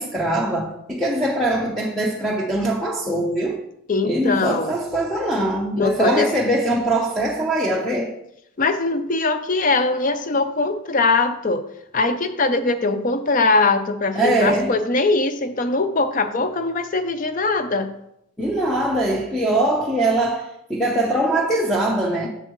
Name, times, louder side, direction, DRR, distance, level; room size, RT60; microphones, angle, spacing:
voice 1, 0.0-3.6 4.0-8.1 14.1-14.8 18.4-22.3, right 1 dB, ahead, 0.6 m, -22 dB
voice 2, 3.9-4.7 5.8-6.3 8.6-11.6 11.9-17.9, left 3 dB, 40° left, 0.5 m, -21 dB
7.2 x 6.9 x 3.1 m
head